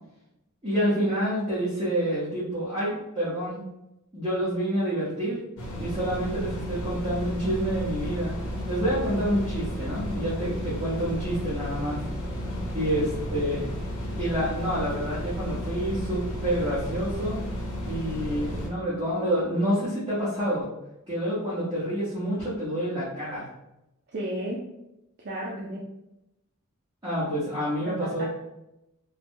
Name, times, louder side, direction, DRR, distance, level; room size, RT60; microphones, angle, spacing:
voice 1, 0.6-3.6 4.1-5.4 5.8-8.3 8.7-12.0 12.7-13.6 14.2-17.4 17.8-20.7 21.1-23.5 27.0-28.2, equal, 20° right, -11 dB, 1.0 m, -28 dB
sound 1, 5.6-18.7, equal, 70° left, 0.7 m, -33 dB
voice 2, 24.1-24.6 25.2-25.8 27.8-28.2, right 1 dB, 50° right, -4 dB, 0.5 m, -33 dB
3.2 x 2.2 x 2.6 m, 0.89 s
head